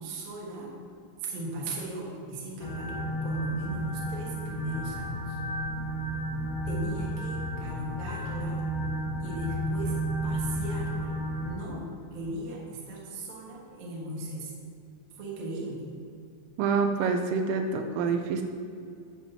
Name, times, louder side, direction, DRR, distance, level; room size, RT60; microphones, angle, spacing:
voice 1, 0.0-0.7 1.2-5.4 6.7-8.6 9.2-11.1 11.4-14.5 15.2-15.9, right 1 dB, 60° right, -3 dB, 2.6 m, -38 dB
sound 1, 2.6-11.5, right 1 dB, 80° left, 3.7 m, -32 dB
voice 2, 16.6-18.4, right 5 dB, 85° right, 5 dB, 3.1 m, -27 dB
11.0 x 8.3 x 2.8 m, 2.4 s
omnidirectional pair, 5.9 m